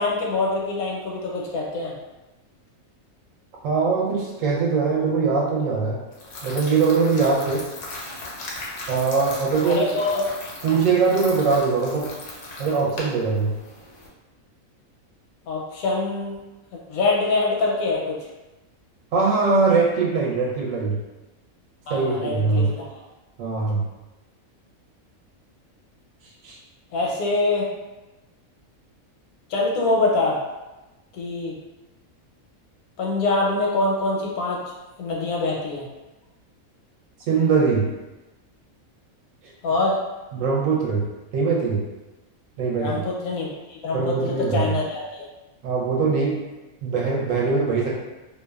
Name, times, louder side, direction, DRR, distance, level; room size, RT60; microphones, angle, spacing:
voice 1, 0.0-2.0 9.6-10.3 15.5-16.4 16.9-18.2 21.9-22.9 26.9-27.7 29.5-30.4 31.1-31.5 33.0-34.6 35.0-35.9 39.6-40.0 42.8-45.3, left 3 dB, 90° left, -2 dB, 1.1 m, -24 dB
voice 2, 3.6-6.0 6.4-7.7 8.9-9.9 10.6-12.1 12.6-13.5 19.1-21.0 21.9-22.7 23.4-23.8 26.4-26.6 37.3-37.9 40.3-41.0 41.3-41.8 42.6-43.0 43.9-44.7 45.6-46.4 46.8-47.9, right 4 dB, 70° right, -3 dB, 0.9 m, -21 dB
sound 1, 6.1-14.1, left 2 dB, 60° left, 0.6 m, -37 dB
2.5 x 2.2 x 2.2 m, 1.1 s
omnidirectional pair, 1.5 m